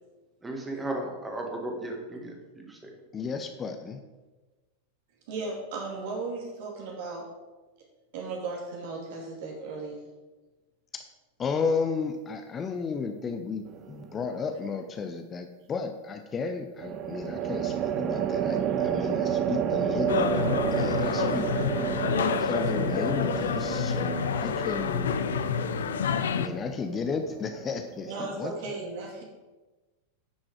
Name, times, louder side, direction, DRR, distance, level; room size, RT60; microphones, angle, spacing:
voice 1, 0.4-2.8, right 1 dB, 10° right, 1 dB, 2.0 m, -35 dB
voice 2, 3.1-4.0 10.9-11.1 11.4-20.2 20.7-21.5 22.4-25.1 26.3-28.5, left 5 dB, 25° left, 6 dB, 0.7 m, -33 dB
voice 3, 5.3-7.3 8.1-10.1 21.0-21.4 24.4-24.5 28.1-29.2, right 3 dB, 50° right, -1 dB, 2.2 m, -36 dB
sound 1, 13.7-14.2 16.8-28.1, right 9 dB, 35° right, 0.6 m, -31 dB
sound 2, 20.1-26.5, left 7 dB, 65° left, 0.6 m, -28 dB
9.8 x 6.2 x 5.0 m, 1.2 s
figure-of-eight pair, 90°, 0 cm